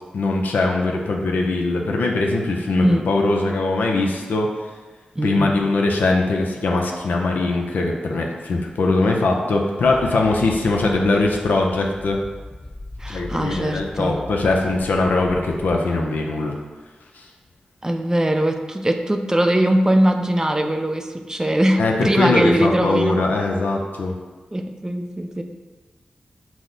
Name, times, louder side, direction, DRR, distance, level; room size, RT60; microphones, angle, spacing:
voice 1, 0.1-4.5 5.2-12.2 13.1-16.6 17.2-17.3 21.8-24.1, left 2 dB, 85° left, 0 dB, 0.5 m, -21 dB
voice 2, 5.2-5.5 13.0-14.2 17.8-23.2 24.5-25.4, right 1 dB, 20° right, 5 dB, 0.4 m, -21 dB
sound 1, 9.9-15.7, left 2 dB, 30° left, 0.5 m, -38 dB
6.1 x 2.1 x 3.8 m, 1.3 s
cardioid pair, 45°, 3 cm